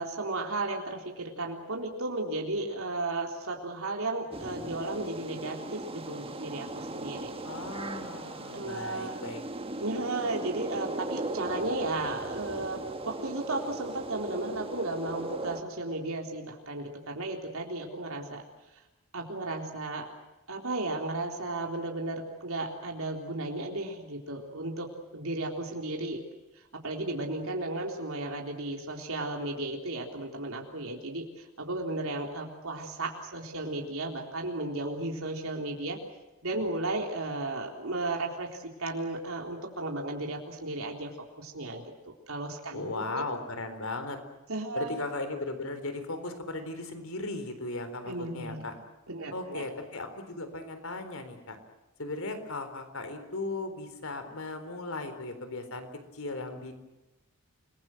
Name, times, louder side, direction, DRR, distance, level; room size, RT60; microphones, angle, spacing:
voice 1, 0.0-7.3 8.5-9.2 9.8-18.4 19.1-20.1 20.5-24.9 25.1-26.2 26.7-36.0 36.4-41.1 41.4-41.8 42.3-43.2 44.5-44.9 48.1-48.6 49.1-49.6, right 2 dB, 70° right, 1 dB, 3.8 m, -34 dB
sound 1, 4.3-15.6, right 2 dB, 25° right, 1.5 m, -38 dB
voice 2, 7.4-9.4 42.7-44.2 44.7-48.7 49.3-51.6 52.0-56.7, left 2 dB, 70° left, 9 dB, 4.1 m, -37 dB
29.5 x 21.0 x 7.8 m, 1.0 s
head